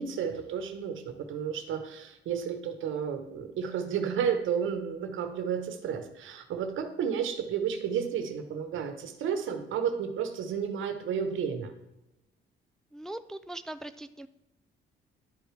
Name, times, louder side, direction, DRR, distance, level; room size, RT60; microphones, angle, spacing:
voice 1, 0.0-11.7, right 7 dB, 80° right, 7 dB, 1.1 m, -32 dB
voice 2, 12.9-14.3, right 1 dB, 5° left, 10 dB, 0.3 m, -40 dB
11.0 x 4.8 x 3.3 m, 0.93 s
cardioid pair, 90°, 20 cm